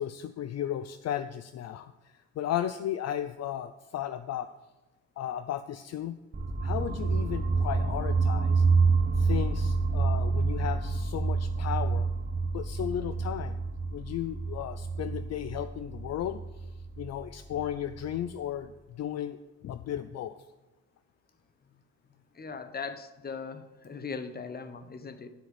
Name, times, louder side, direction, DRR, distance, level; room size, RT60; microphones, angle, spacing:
voice 1, 0.0-4.5 5.2-6.2 6.6-8.6 9.2-12.1 12.5-13.6 13.9-16.7 17.0-19.4 19.6-20.4, left 10 dB, 60° left, 12 dB, 0.5 m, -35 dB
sound 1, 6.3-18.3, right 4 dB, 30° right, 1.0 m, -28 dB
voice 2, 22.3-25.3, left 5 dB, 30° left, 10 dB, 1.1 m, -39 dB
9.8 x 5.9 x 8.0 m, 1.1 s
cardioid pair, 90°, 30 cm